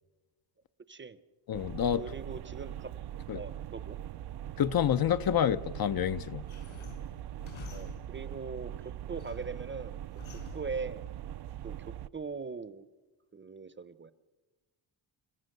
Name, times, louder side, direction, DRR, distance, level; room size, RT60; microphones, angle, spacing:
voice 1, 0.9-1.2 1.9-2.9 3.3-4.0 7.7-10.0 10.5-11.1 11.6-12.8 13.3-14.1, right 4 dB, 25° right, 0.7 m, -41 dB
voice 2, 1.5-2.0 3.3-3.4 4.6-6.4, left 9 dB, 50° left, 0.6 m, -28 dB
sound 1, 1.5-12.1, right 11 dB, 55° right, 0.6 m, -42 dB
sound 2, 6.5-8.3 8.8-9.6 10.1-10.8, left 5 dB, 75° left, 5.1 m, -49 dB
29.5 x 15.0 x 6.6 m
cardioid pair, 130°, 48 cm